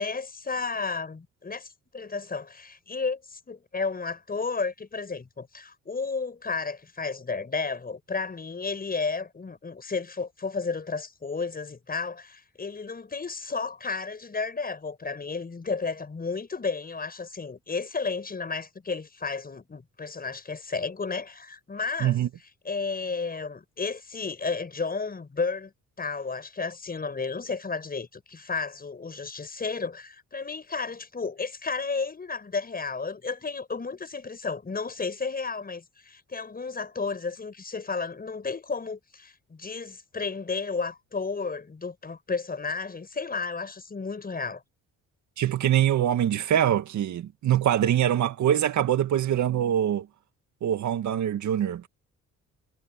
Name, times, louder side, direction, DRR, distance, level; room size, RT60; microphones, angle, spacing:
voice 1, 0.0-22.2 22.6-25.7 26.0-44.6, left 4 dB, 30° left, 6.6 m, -32 dB
voice 2, 45.4-50.1 50.6-51.9, right 10 dB, 70° right, 2.1 m, -24 dB
cardioid pair, 90°, 30 cm